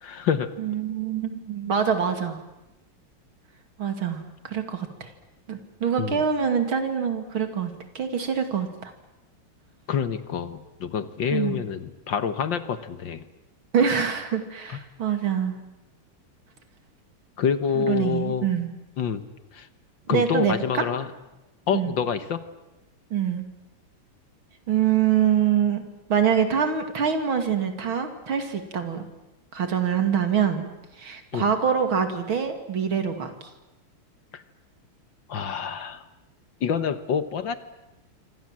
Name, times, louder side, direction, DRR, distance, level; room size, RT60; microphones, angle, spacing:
voice 1, 0.0-0.5 6.0-6.2 9.9-13.2 17.4-18.5 19.0-19.2 19.5-19.7 20.1-21.1 21.7-22.4 31.3-31.5 34.3-34.4 35.3-36.0 36.6-37.5, left 7 dB, 60° left, 11 dB, 1.9 m, -27 dB
voice 2, 0.6-2.4 3.8-5.1 5.5-8.9 11.3-11.6 13.7-15.6 17.8-18.7 20.1-20.8 21.7-21.9 23.1-23.4 24.7-25.8 26.1-29.1 29.5-30.7 31.0-33.3, right 7 dB, 65° right, 7 dB, 3.2 m, -25 dB
27.0 x 25.0 x 7.5 m, 1.0 s
omnidirectional pair, 2.4 m